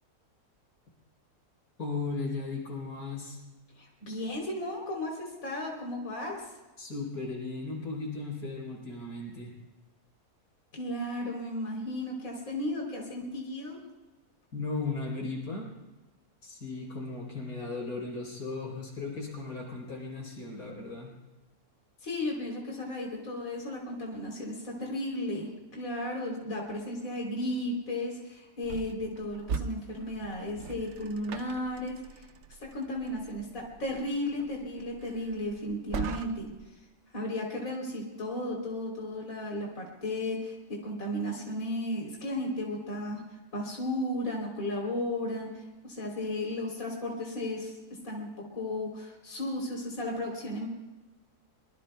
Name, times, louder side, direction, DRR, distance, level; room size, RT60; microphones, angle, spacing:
voice 1, 1.8-3.4 6.8-9.6 14.5-15.7 16.4-21.1, left 3 dB, 90° left, 0 dB, 4.6 m, -36 dB
voice 2, 3.8-6.4 10.7-13.8 22.0-32.3 32.6-36.5 37.1-43.2 43.5-48.3 48.5-50.7, left 1 dB, 60° left, -1 dB, 3.9 m, -34 dB
sound 1, 28.6-36.7, right 6 dB, 55° right, 0.9 m, -41 dB
25.0 x 22.0 x 2.3 m, 1.1 s
omnidirectional pair, 1.7 m